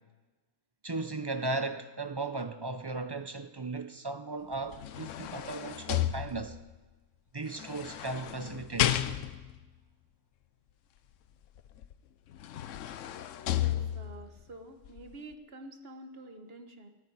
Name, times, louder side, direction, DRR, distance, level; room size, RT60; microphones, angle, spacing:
voice 1, 0.8-6.6 7.3-9.0, right 3 dB, 35° right, 0.4 m, -36 dB
sound 1, 4.5-6.7 7.6-9.6 11.8-11.9 12.3-14.3 14.9-15.0, left 12 dB, 85° left, 1.0 m, -33 dB
voice 2, 13.5-16.9, right 2 dB, 50° right, 1.5 m, -48 dB
15.0 x 8.4 x 9.9 m
omnidirectional pair, 1.3 m